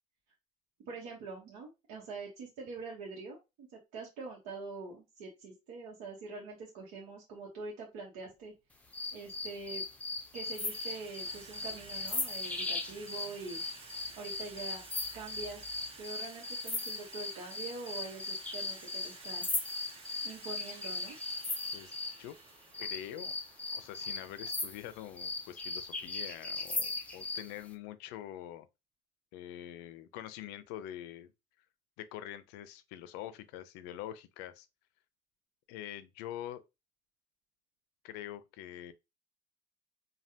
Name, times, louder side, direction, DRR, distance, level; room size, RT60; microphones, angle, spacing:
voice 1, 0.9-8.5 9.1-9.8 10.3-13.6 14.2-14.8 15.1-15.6 16.0-19.4 20.2-21.2, right 3 dB, 75° right, 1.1 m, -44 dB
Water tap faucet / Sink (filling or washing), 8.3-8.5 9.4-9.8 10.1-27.7, right 4 dB, 35° right, 0.9 m, -54 dB
sound 1, 8.9-22.2 22.7-27.5, left 3 dB, 10° left, 0.6 m, -38 dB
voice 2, 21.7-22.4 22.8-23.3 23.7-28.7 29.3-31.3 32.0-34.7 35.7-36.6 38.0-38.9, left 12 dB, 75° left, 0.5 m, -45 dB
3.2 x 2.3 x 2.8 m
supercardioid pair, 115°, 17 cm